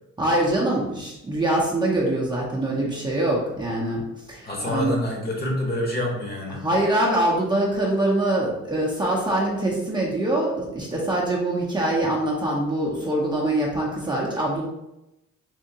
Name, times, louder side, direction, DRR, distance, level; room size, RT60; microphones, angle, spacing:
voice 1, 0.2-5.0 6.5-14.7, right 1 dB, 15° right, -5 dB, 0.7 m, -24 dB
voice 2, 4.4-6.6, left 1 dB, 30° left, -2 dB, 1.1 m, -27 dB
3.6 x 2.8 x 2.8 m, 0.92 s
cardioid pair, 90°, 30 cm